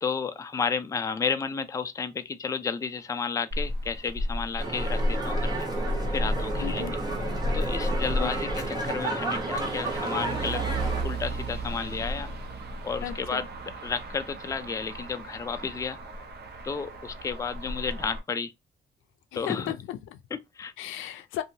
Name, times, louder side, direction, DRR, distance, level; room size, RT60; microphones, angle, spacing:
voice 1, 0.0-5.7 6.1-6.8 7.5-10.6 11.0-12.3 12.8-13.5 13.8-16.0 16.6-18.5 19.3-19.7 20.3-20.7, left 5 dB, 15° left, 0.3 m, -32 dB
Motor vehicle (road), 3.5-18.2, equal, 55° right, 0.8 m, -33 dB
sound 1, 4.6-11.0, right 2 dB, 20° right, 0.9 m, -32 dB
voice 2, 6.6-6.9 8.2-8.3 13.0-13.4 19.3-20.2 20.8-21.4, left 12 dB, 85° left, 0.4 m, -35 dB
2.8 x 2.3 x 2.6 m
cardioid pair, 90°, 20 cm